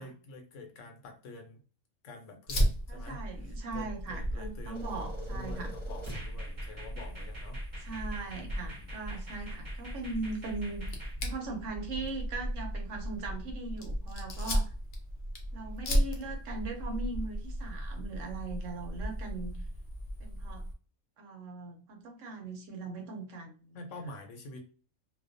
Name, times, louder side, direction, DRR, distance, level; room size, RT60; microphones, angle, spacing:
voice 1, 0.0-1.6 2.0-7.6 7.9-8.1 8.4-8.9 23.7-24.6, left 2 dB, 70° left, 4 dB, 0.9 m, -47 dB
Fire, 2.5-20.7, equal, 55° left, 0.6 m, -35 dB
voice 2, 2.9-5.7 7.8-14.7 15.5-19.6 20.2-20.6 21.2-23.5, right 3 dB, 75° right, 3 dB, 0.9 m, -40 dB
sound 1, 4.7-11.1, right 1 dB, 30° right, 0.6 m, -47 dB
2.3 x 2.1 x 2.4 m, 0.38 s
omnidirectional pair, 1.4 m